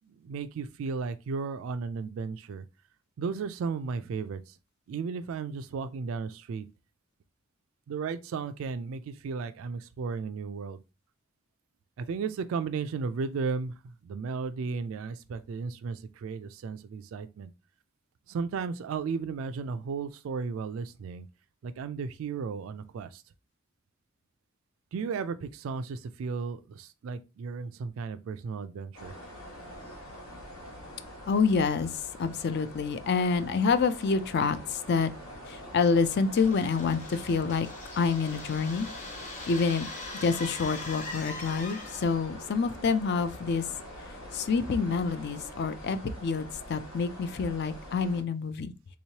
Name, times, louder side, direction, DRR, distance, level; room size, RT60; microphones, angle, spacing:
voice 1, 0.2-2.6 3.2-4.4 4.9-6.7 7.9-10.8 12.0-13.7 14.0-17.5 18.3-21.3 21.6-23.2 24.9-29.1, right 5 dB, 70° right, 0.3 m, -34 dB
sound 1, 28.9-48.2, equal, 90° left, 1.4 m, -45 dB
voice 2, 31.3-35.1 35.5-37.7 38.0-38.9 39.5-39.9 40.2-43.6 44.3-48.7, left 5 dB, 50° left, 0.4 m, -27 dB
sound 2, 36.4-42.3, left 3 dB, 35° left, 0.9 m, -42 dB
3.5 x 3.0 x 2.8 m
head